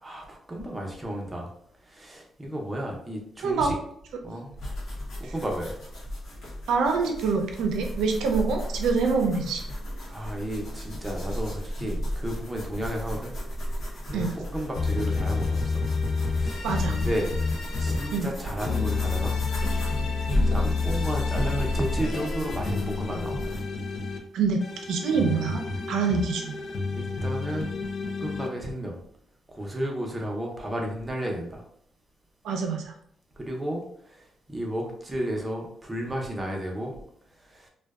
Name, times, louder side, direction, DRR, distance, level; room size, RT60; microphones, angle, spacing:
voice 1, 0.0-1.5 1.9-3.8 4.2-4.5 5.2-5.8 10.1-13.3 14.1-15.8 16.3-17.3 17.8-19.5 20.5-23.6 26.9-27.8 28.2-29.0 29.5-31.6 33.4-36.9 37.4-37.7, equal, 20° right, 0 dB, 0.6 m, -33 dB
sound 1, 4.6-23.6, equal, 85° left, 0.9 m, -33 dB
voice 2, 6.7-9.6 14.1-14.3 16.6-16.9 18.1-18.3 24.3-24.6 24.9-25.6 25.9-26.6 32.4-32.9, right 5 dB, 85° right, 3 dB, 0.4 m, -25 dB
sound 2, 14.8-18.2 18.6-24.2 24.6-28.5, left 4 dB, 60° left, 0.5 m, -29 dB
2.5 x 2.2 x 2.3 m, 0.69 s
cardioid pair, 85°, 0 cm